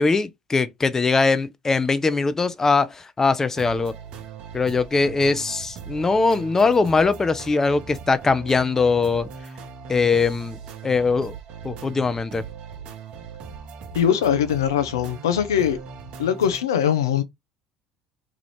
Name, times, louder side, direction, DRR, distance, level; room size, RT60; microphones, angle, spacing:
voice 1, 0.0-3.9 4.5-9.3 9.9-10.6 10.8-11.3 11.6-12.4, left 4 dB, 20° left, 0.4 m, -21 dB
sound 1, 3.5-16.6, right 6 dB, 55° right, 0.7 m, -39 dB
voice 2, 13.9-15.8 16.2-17.2, left 9 dB, 80° left, 0.4 m, -21 dB
3.0 x 2.4 x 3.2 m
hypercardioid pair, 65°, 2 cm